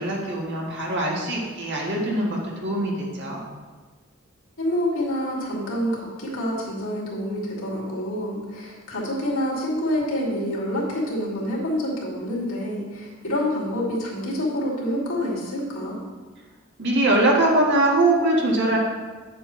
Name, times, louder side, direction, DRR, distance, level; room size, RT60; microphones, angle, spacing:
voice 1, 0.0-3.4 16.8-18.8, right 2 dB, 55° right, -2 dB, 1.6 m, -22 dB
voice 2, 4.6-16.0, equal, 80° left, -4 dB, 2.6 m, -27 dB
8.8 x 7.6 x 3.2 m, 1.4 s
head